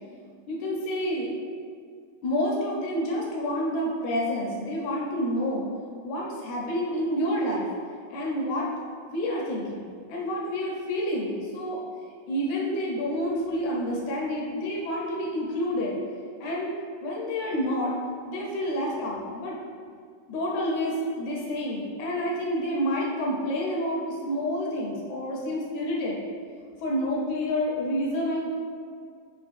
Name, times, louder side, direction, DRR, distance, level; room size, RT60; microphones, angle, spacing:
voice 1, 0.5-1.3 2.2-5.6 6.0-7.7 8.1-8.7 9.1-11.8 12.3-16.0 16.4-16.7 17.0-17.9 18.3-19.6 20.3-26.2 26.8-28.5, equal, 75° left, -3 dB, 1.7 m, -28 dB
10.0 x 3.9 x 2.5 m, 2.1 s
omnidirectional pair, 4.2 m